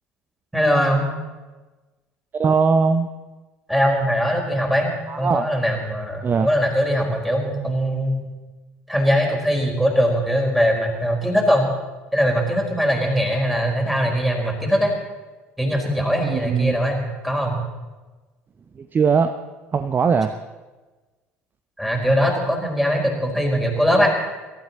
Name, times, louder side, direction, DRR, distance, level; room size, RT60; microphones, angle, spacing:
voice 1, 0.5-1.1 3.7-4.9 5.2-8.2 8.9-11.7 12.1-14.9 15.6-17.6 21.8-24.1, equal, ahead, 1 dB, 4.4 m, -21 dB
voice 2, 2.3-3.1 5.1-5.5 6.2-6.5 16.2-16.7 18.9-19.3 19.7-20.3, right 5 dB, 25° right, 9 dB, 0.7 m, -19 dB
23.5 x 13.0 x 4.1 m, 1.2 s
figure-of-eight pair, 60°, 7 cm